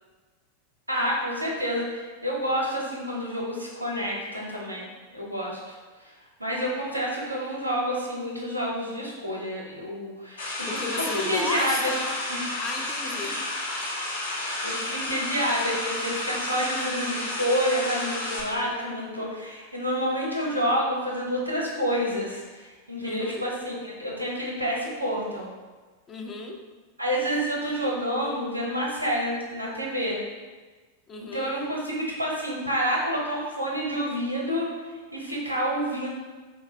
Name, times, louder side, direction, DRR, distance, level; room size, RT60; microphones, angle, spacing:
voice 1, 0.9-4.8 5.1-5.8 6.0-6.1 6.4-10.7 11.1-11.9 12.3-12.4 14.6-25.5 27.0-30.2 31.2-34.7 35.1-36.1, equal, 85° right, -3 dB, 0.6 m, -28 dB
sound 1, 10.4-18.4, left 1 dB, 70° left, 0.8 m, -31 dB
voice 2, 10.7-12.2 12.6-13.4 23.0-23.4 26.1-26.6 31.1-31.5, left 3 dB, 25° left, 3 dB, 0.3 m, -34 dB
3.7 x 2.0 x 2.4 m, 1.4 s
figure-of-eight pair, 90°, 0 cm